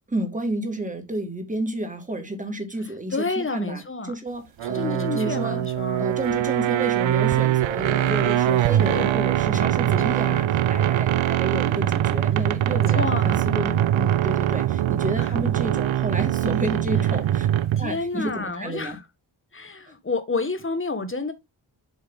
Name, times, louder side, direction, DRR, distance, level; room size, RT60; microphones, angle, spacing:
voice 1, 0.1-5.6 6.0-17.5 17.8-19.0, right 1 dB, 15° right, 1.8 m, -31 dB
voice 2, 3.1-4.1 4.7-6.1 7.9-8.3 8.8-9.1 10.2-10.4 10.7-10.8 12.7-13.4 15.2-15.3 17.7-19.0 19.5-21.3, left 3 dB, 25° left, 1.3 m, -30 dB
sound 1, 4.6-18.0, right 12 dB, 80° right, 0.5 m, -22 dB
7.6 x 5.4 x 3.6 m
wide cardioid pair, 135°, 46 cm